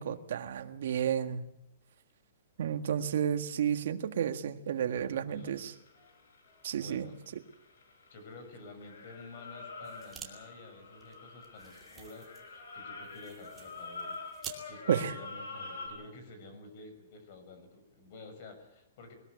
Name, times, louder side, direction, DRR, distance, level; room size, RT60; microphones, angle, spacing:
voice 1, 0.0-1.5 2.6-5.7 6.6-7.1 14.9-15.2, right 9 dB, 60° right, 8 dB, 1.7 m, -31 dB
voice 2, 5.1-5.7 6.7-7.2 7.6-7.7 8.1-19.1, left 2 dB, 40° left, 7 dB, 6.5 m, -51 dB
sound 1, 5.4-8.5 8.8-15.9, left 3 dB, 85° left, 7.7 m, -45 dB
sound 2, 9.8-10.3 10.6-10.7 11.0-14.6, right 8 dB, 15° right, 2.6 m, -49 dB
21.5 x 20.5 x 8.3 m, 0.85 s
hypercardioid pair, 170°, 0 cm